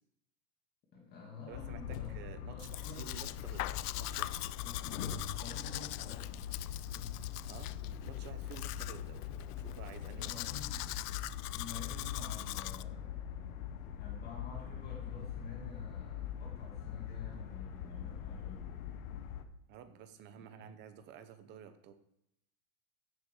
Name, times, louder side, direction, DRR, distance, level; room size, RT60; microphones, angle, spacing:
voice 1, 0.9-3.1 4.6-6.5 6.9-7.3 10.1-10.8 11.5-13.2 14.0-18.7 20.4-20.7, left 5 dB, 20° left, -2 dB, 2.0 m, -49 dB
sound 1, 1.5-19.4, left 9 dB, 60° left, 1.2 m, -42 dB
voice 2, 1.5-4.5 7.5-7.7 8.0-10.5 19.7-21.9, right 8 dB, 25° right, 10 dB, 0.8 m, -52 dB
Domestic sounds home sounds, 2.6-12.8, left 18 dB, 85° left, 0.5 m, -43 dB
sound 2, 4.6-19.2, right 3 dB, 70° right, 3.2 m, -60 dB
15.5 x 6.8 x 4.8 m, 0.78 s
supercardioid pair, 165°, 45 cm